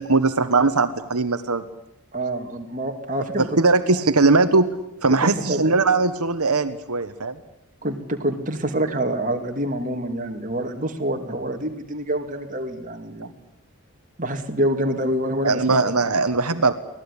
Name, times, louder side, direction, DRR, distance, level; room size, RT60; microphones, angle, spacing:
voice 1, 0.0-1.6 3.6-4.7 5.0-7.4 13.2-13.3 15.4-16.7, right 3 dB, 85° right, 9 dB, 1.3 m, -20 dB
voice 2, 2.1-3.6 5.1-5.7 7.8-13.3 14.2-16.0, right 1 dB, 35° right, 4 dB, 2.5 m, -26 dB
24.5 x 17.0 x 10.0 m, 0.85 s
head